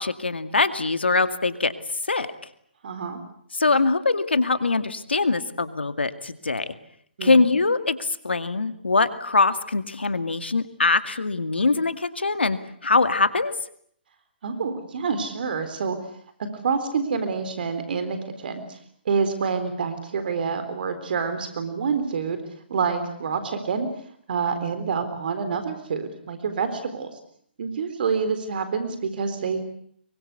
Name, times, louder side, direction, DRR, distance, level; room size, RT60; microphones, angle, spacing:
voice 1, 0.0-1.7 2.1-2.3 3.5-6.7 7.2-13.5, left 3 dB, 85° left, 10 dB, 2.2 m, -23 dB
voice 2, 2.8-3.2 7.2-7.5 14.4-16.0 16.6-18.8 19.1-22.4 22.7-23.9 24.3-27.1 27.6-29.6, right 5 dB, 60° right, 10 dB, 3.9 m, -27 dB
25.5 x 23.5 x 8.3 m, 0.64 s
figure-of-eight pair, 135°, 6 cm